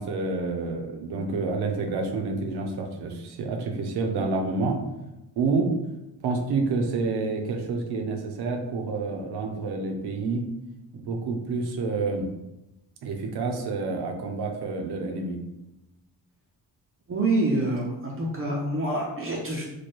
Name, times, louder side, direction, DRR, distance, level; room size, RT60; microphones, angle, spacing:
voice 1, 0.0-4.8 5.4-5.7 6.2-10.4 10.9-12.2 13.0-15.4, right 3 dB, 75° right, 3 dB, 0.7 m, -28 dB
voice 2, 17.1-19.6, right 2 dB, 35° right, -2 dB, 0.5 m, -26 dB
3.2 x 2.2 x 4.3 m, 0.96 s
cardioid pair, 150°, 39 cm